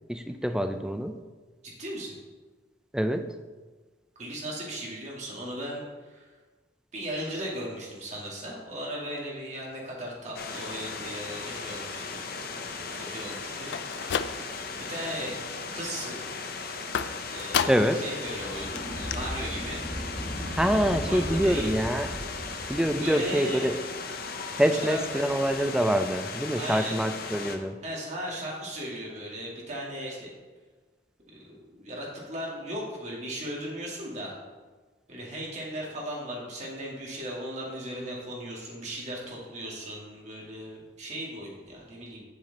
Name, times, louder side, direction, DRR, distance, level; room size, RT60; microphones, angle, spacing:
voice 1, 0.1-1.1 2.9-3.2 17.7-18.0 20.6-22.1 22.7-23.8 24.6-27.8, equal, 5° right, 7 dB, 0.3 m, -25 dB
voice 2, 1.6-2.1 4.2-6.3 6.9-12.2 12.6-14.4 14.8-15.4 15.7-16.2 17.3-19.8 21.0-21.7 23.0-23.8 24.8-25.2 26.5-27.0 27.8-30.3 31.3-34.3 35.1-42.2, equal, 40° right, -3 dB, 2.0 m, -37 dB
sound 1, 10.3-27.6, left 4 dB, 55° left, 0.7 m, -37 dB
sound 2, 13.6-14.8 15.2-15.7 16.9-18.1 18.4-18.5 18.8-18.9 19.1-19.2, left 7 dB, 70° left, 0.3 m, -31 dB
sound 3, 18.3-23.0, equal, 20° left, 1.9 m, -37 dB
7.1 x 6.9 x 4.0 m, 1.3 s
head